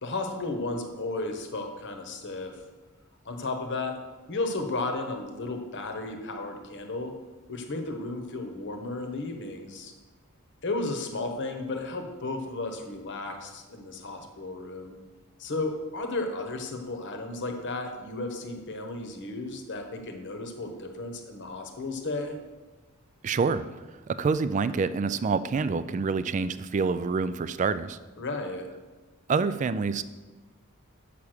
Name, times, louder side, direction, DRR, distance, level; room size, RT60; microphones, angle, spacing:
voice 1, 0.0-2.5 3.2-3.9 4.3-7.1 7.5-9.9 10.6-15.0 15.4-22.3 28.2-28.7, left 2 dB, 55° left, 5 dB, 1.0 m, -34 dB
voice 2, 23.2-23.6 24.1-28.0 29.3-30.0, right 4 dB, 35° right, 14 dB, 0.3 m, -27 dB
7.0 x 6.0 x 6.6 m, 1.3 s
head